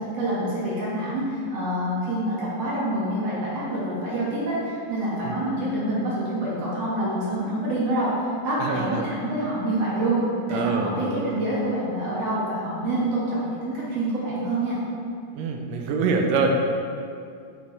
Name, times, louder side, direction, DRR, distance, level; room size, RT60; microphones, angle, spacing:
voice 1, 0.1-10.2 10.5-14.8, right 1 dB, 55° right, -8 dB, 2.4 m, -26 dB
voice 2, 8.6-9.1 10.5-11.4 15.3-16.6, right 3 dB, 85° right, 3 dB, 2.3 m, -25 dB
7.2 x 6.7 x 3.2 m, 2.3 s
omnidirectional pair, 3.8 m